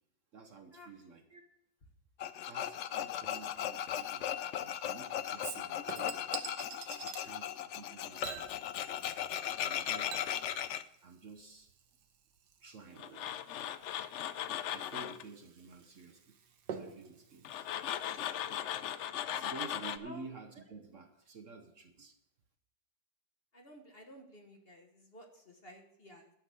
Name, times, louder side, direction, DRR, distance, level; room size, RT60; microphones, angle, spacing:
voice 1, 0.3-1.4 2.5-4.3 4.6-6.2 7.0-8.5 9.6-10.3 11.0-11.7 12.6-13.4 14.7-16.4 16.8-17.7 18.0-18.5 19.3-22.2, right 4 dB, 55° right, 6 dB, 1.2 m, -51 dB
Tools, 2.2-10.8 13.0-15.2 17.4-20.0, left 10 dB, 75° left, 0.6 m, -37 dB
Chink clink / Liquid, 5.4-7.3 8.2-9.4 9.6-18.7 19.0-19.1, right 6 dB, 80° right, 1.7 m, -48 dB
voice 2, 23.5-26.3, left 1 dB, 35° left, 3 dB, 1.4 m, -54 dB
12.0 x 5.9 x 8.1 m, 0.73 s
omnidirectional pair, 1.8 m